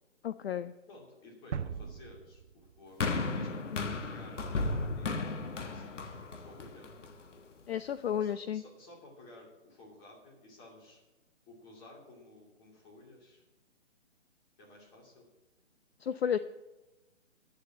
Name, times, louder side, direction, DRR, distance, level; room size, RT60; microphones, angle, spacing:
voice 1, 0.2-0.7 3.7-3.9 7.7-8.6 16.0-16.4, left 9 dB, 55° left, 13 dB, 0.5 m, -32 dB
voice 2, 0.9-6.9 8.2-11.0 11.5-13.4 14.6-15.3, left 2 dB, 15° left, -2 dB, 2.6 m, -55 dB
sound 1, 1.5-3.4, right 7 dB, 65° right, 0.8 m, -41 dB
sound 2, 3.0-7.4 8.1-8.2, left 3 dB, 75° left, 1.4 m, -35 dB
10.5 x 6.8 x 7.7 m, 1.0 s
hypercardioid pair, 155°, 37 cm